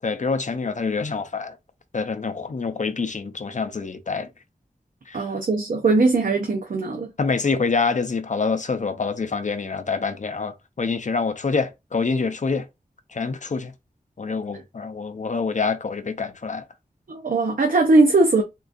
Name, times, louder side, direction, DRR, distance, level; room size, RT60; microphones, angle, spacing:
voice 1, 0.0-1.5 1.9-4.3 5.1-5.2 7.2-12.7 13.1-13.7 14.2-16.6, left 4 dB, 55° left, 0.5 m, -26 dB
voice 2, 5.1-7.1 17.1-18.4, right 3 dB, 65° right, 0.6 m, -19 dB
3.7 x 2.4 x 2.4 m
wide cardioid pair, 55°, 15 cm